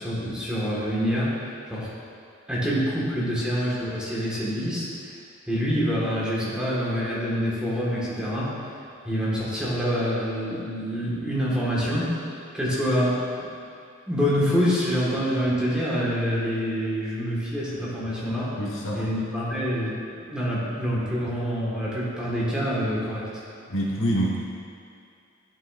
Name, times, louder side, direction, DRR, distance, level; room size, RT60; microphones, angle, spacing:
voice 1, 0.0-1.3 1.6-1.9 2.5-5.2 5.5-8.6 9.0-13.5 14.1-18.6 18.9-23.4, equal, 5° right, -8 dB, 1.5 m, -26 dB
voice 2, 18.6-19.0 23.7-24.4, right 1 dB, 75° left, -4 dB, 1.2 m, -26 dB
11.0 x 6.1 x 2.5 m, 2.5 s
head